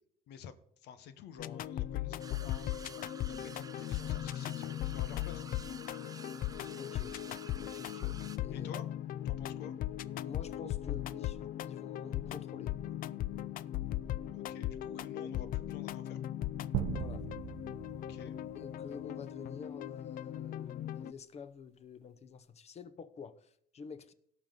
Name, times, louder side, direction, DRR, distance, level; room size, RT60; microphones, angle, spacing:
voice 1, 0.8-5.4 8.5-8.9 9.2-9.8 14.3-16.2 18.0-18.4, left 8 dB, 85° left, 1.0 m, -50 dB
sound 1, 1.4-21.1, left 13 dB, 55° left, 0.4 m, -38 dB
sound 2, 2.2-8.4, right 4 dB, 20° right, 0.7 m, -51 dB
voice 2, 6.8-7.2 7.5-8.7 10.2-11.4 11.6-12.8 16.9-17.3 18.5-24.1, left 6 dB, 40° left, 0.9 m, -48 dB
sound 3, 16.7-19.3, right 10 dB, 75° right, 0.7 m, -39 dB
17.5 x 6.0 x 3.8 m
cardioid pair, 110°, 17 cm